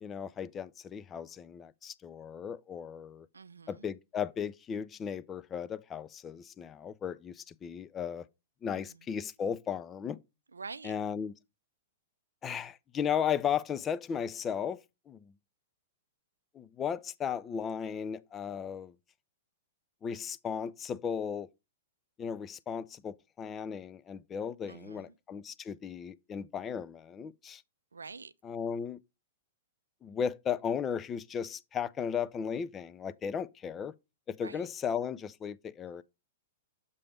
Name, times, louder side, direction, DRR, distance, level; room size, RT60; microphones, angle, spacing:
voice 1, 0.0-3.3 3.7-8.3 8.6-10.2 10.8-11.3 12.4-14.8 15.1-15.2 16.5-18.9 20.0-21.5 22.2-27.6 28.4-29.0 30.0-33.9 34.3-36.0, left 7 dB, 25° left, 0.4 m, -35 dB
voice 2, 3.3-3.9 8.7-8.8 10.5-10.9 24.7-25.1 27.9-28.3 34.4-34.7, right 4 dB, 80° right, 0.4 m, -46 dB
6.8 x 3.3 x 4.9 m
figure-of-eight pair, 105°, 0 cm